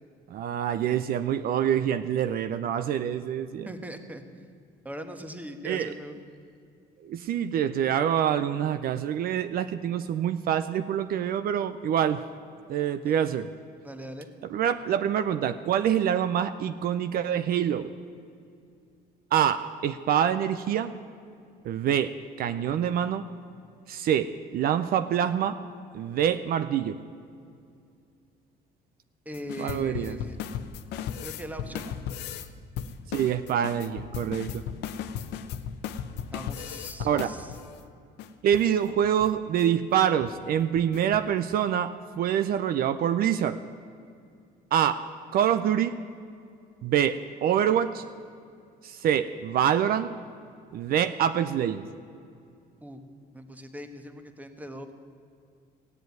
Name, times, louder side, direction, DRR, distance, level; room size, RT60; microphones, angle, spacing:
voice 1, 0.3-3.7 5.6-5.9 7.0-12.2 12.7-13.5 14.5-17.9 19.3-20.9 21.6-23.2 23.9-25.6 25.9-27.0 29.6-30.2 33.1-34.6 37.0-37.3 38.4-43.6 44.7-45.0 45.3-46.0 46.8-48.0 48.8-50.1 50.7-51.8, right 9 dB, 60° right, 11 dB, 0.6 m, -26 dB
voice 2, 3.6-4.4 4.8-6.2 13.0-13.1 13.8-14.3 29.2-30.4 31.2-32.0 36.3-37.5 52.8-53.0 53.3-54.9, equal, 10° right, 7 dB, 1.3 m, -40 dB
sound 1, 29.3-32.5 32.8-37.7 38.2-38.3 38.5-38.7 39.0-39.3 39.6-39.7 40.1-40.3 40.8-41.2, left 8 dB, 85° left, 0.8 m, -36 dB
16.0 x 7.8 x 9.3 m, 2.4 s
cardioid pair, 110°, 17 cm